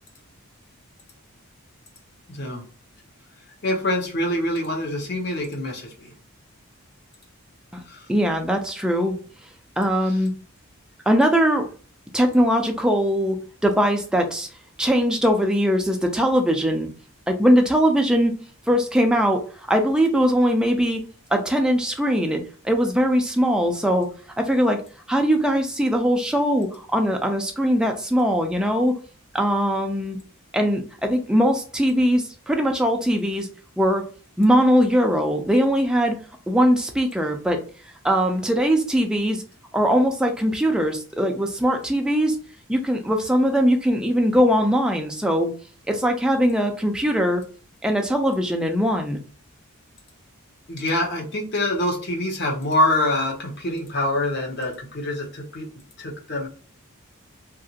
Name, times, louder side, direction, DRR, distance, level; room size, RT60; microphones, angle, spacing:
voice 1, 2.3-2.6 3.6-6.1 7.9-8.1 50.7-55.7 56.0-56.5, left 1 dB, 50° left, 1 dB, 0.8 m, -25 dB
voice 2, 8.1-9.1 9.8-10.3 11.1-11.7 12.1-13.4 13.6-14.5 14.8-16.9 17.3-18.4 18.7-21.0 21.3-24.1 24.4-24.8 25.1-29.0 29.3-30.2 30.5-33.5 33.8-34.0 34.4-36.2 36.5-37.6 38.0-39.4 39.7-42.4 42.7-45.5 45.9-47.4 47.8-49.2, equal, 5° right, 3 dB, 0.3 m, -21 dB
2.8 x 2.4 x 2.7 m, 0.38 s
head